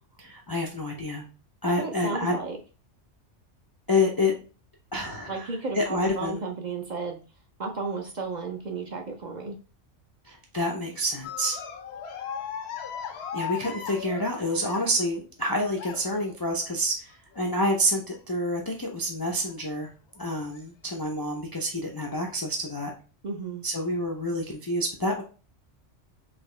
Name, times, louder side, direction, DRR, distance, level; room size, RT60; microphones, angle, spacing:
voice 1, 0.2-1.3 1.6-2.4 3.9-4.3 4.9-5.5 5.7-6.4 10.2-11.6 13.3-19.9 20.2-22.9 23.6-25.2, left 1 dB, 40° left, -1 dB, 0.3 m, -28 dB
voice 2, 1.8-2.6 5.3-7.2 7.6-9.6 23.2-23.6, right 4 dB, 45° right, 2 dB, 0.6 m, -33 dB
sound 1, 11.2-15.2 15.8-16.3 17.3-17.7 18.1-18.2 19.5-19.6 20.4-20.6, left 8 dB, 65° left, 0.8 m, -37 dB
4.0 x 2.8 x 3.2 m, 0.36 s
omnidirectional pair, 1.2 m